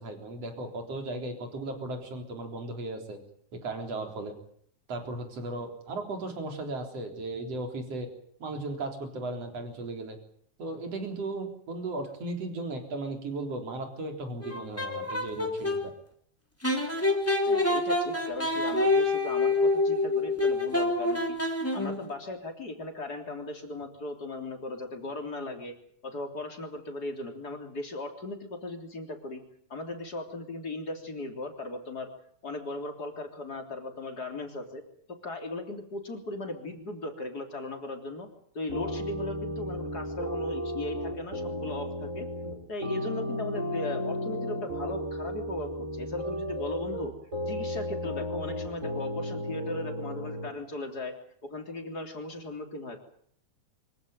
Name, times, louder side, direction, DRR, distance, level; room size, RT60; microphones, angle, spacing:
voice 1, 0.0-3.2 3.5-4.3 4.9-8.1 8.4-10.2 10.6-15.9, right 2 dB, 50° right, 4 dB, 4.9 m, -36 dB
sound 1, 14.4-15.8 16.6-22.1, left 2 dB, 5° left, 3.3 m, -27 dB
voice 2, 17.5-21.4 21.7-25.7 26.0-29.4 29.7-32.1 32.4-34.8 35.2-38.3 38.5-42.3 42.7-47.1 47.5-51.1 51.4-53.0, left 2 dB, 30° left, 4 dB, 3.7 m, -37 dB
sound 2, 38.7-50.5, equal, 20° right, 7.3 m, -34 dB
25.0 x 16.0 x 9.2 m, 0.65 s
omnidirectional pair, 3.7 m